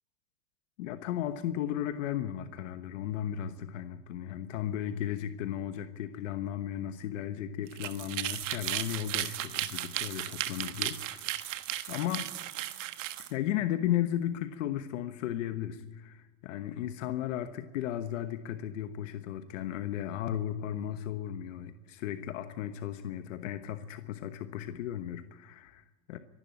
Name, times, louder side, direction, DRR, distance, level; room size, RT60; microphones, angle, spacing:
voice 1, 0.8-11.3 11.9-12.3 13.2-26.2, left 11 dB, 85° left, 9 dB, 1.2 m, -35 dB
sound 1, 7.7-13.3, right 14 dB, 85° right, 1.4 m, -35 dB
24.0 x 12.0 x 9.3 m, 1.2 s
supercardioid pair, 120°, 37 cm